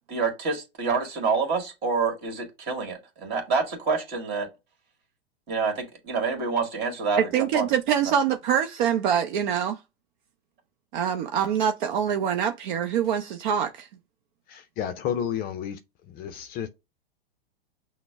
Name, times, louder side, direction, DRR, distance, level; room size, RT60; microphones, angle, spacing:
voice 1, 0.1-4.5 5.5-7.7 8.0-8.1, right 5 dB, 35° right, 1.9 m, -27 dB
voice 2, 7.2-9.8 10.9-13.9, right 8 dB, 50° right, 0.6 m, -25 dB
voice 3, 14.5-15.8 16.1-16.7, left 9 dB, 30° left, 0.5 m, -31 dB
5.9 x 2.1 x 3.4 m
hypercardioid pair, 115°, 30 cm